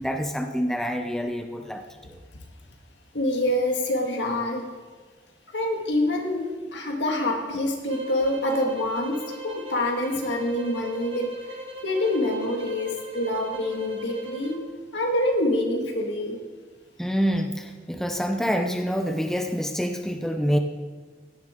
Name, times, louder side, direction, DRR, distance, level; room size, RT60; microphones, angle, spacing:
voice 1, 0.0-2.2 17.0-20.6, equal, ahead, 4 dB, 0.7 m, -27 dB
voice 2, 3.1-4.7 5.5-14.6 14.9-16.4, left 1 dB, 85° left, 2 dB, 2.0 m, -26 dB
sound 1, 7.9-14.7, right 1 dB, 30° right, 1.1 m, -40 dB
16.5 x 10.5 x 3.8 m, 1.4 s
head